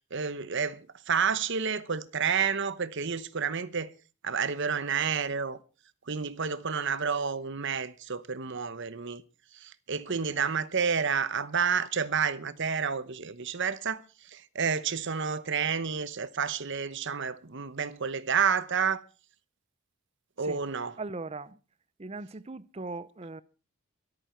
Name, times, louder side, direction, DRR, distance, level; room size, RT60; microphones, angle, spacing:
voice 1, 0.1-3.9 4.2-5.6 6.1-9.2 9.6-14.0 14.3-19.0 20.4-20.9, right 6 dB, 55° right, 1.0 m, -30 dB
voice 2, 21.0-21.6 22.0-23.4, right 3 dB, 30° right, 0.7 m, -39 dB
24.0 x 8.9 x 4.5 m
head